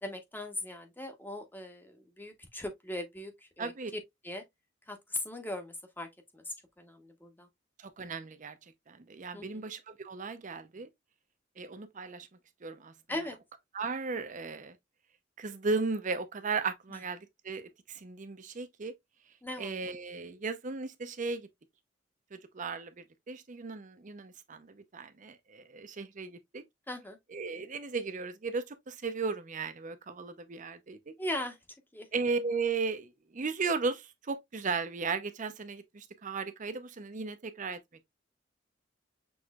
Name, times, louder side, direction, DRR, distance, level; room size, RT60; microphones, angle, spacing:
voice 1, 0.0-4.4 4.9-6.1 6.3-7.5 9.3-9.5 13.1-13.4 19.4-19.9 26.9-27.2 31.2-31.6 31.9-32.1, left 1 dB, 10° left, 0.9 m, -39 dB
voice 2, 3.6-3.9 7.8-10.9 11.6-12.3 12.6-12.9 13.7-14.8 15.4-18.9 19.6-21.5 22.3-26.6 27.3-31.1 32.1-37.8, right 4 dB, 45° right, 0.6 m, -36 dB
6.2 x 3.1 x 2.3 m
head